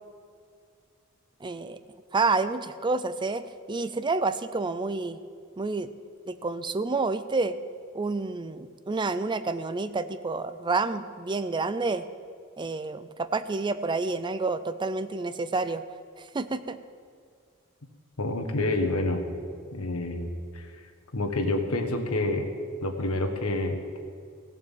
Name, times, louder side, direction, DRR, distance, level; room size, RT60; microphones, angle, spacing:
voice 1, 1.4-1.8 2.1-5.2 5.6-5.9 6.3-7.6 7.9-12.0 12.6-15.8 16.2-16.8, right 3 dB, 20° right, 12 dB, 0.4 m, -29 dB
voice 2, 18.2-19.2 19.7-20.3 20.5-20.7 21.1-22.5 22.8-24.0, left 2 dB, 75° left, 5 dB, 1.5 m, -28 dB
17.0 x 7.3 x 7.5 m, 2.2 s
head